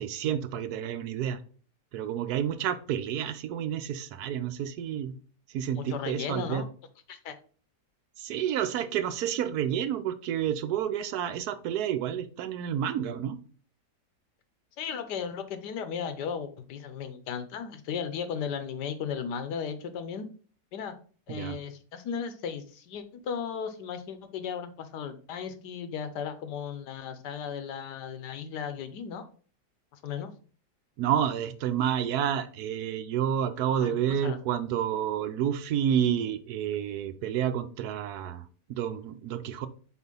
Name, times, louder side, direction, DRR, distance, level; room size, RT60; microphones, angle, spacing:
voice 1, 0.0-1.4 1.9-5.1 5.5-6.6 8.2-13.4 21.3-21.6 31.0-38.4 38.7-39.7, right 9 dB, 75° right, 11 dB, 1.1 m, -29 dB
voice 2, 5.7-6.7 7.1-7.4 14.8-20.3 20.7-20.9 21.3-29.3 30.0-30.3 33.8-34.4, left 7 dB, 80° left, 10 dB, 1.4 m, -36 dB
5.0 x 4.2 x 5.3 m, 0.42 s
omnidirectional pair, 1.8 m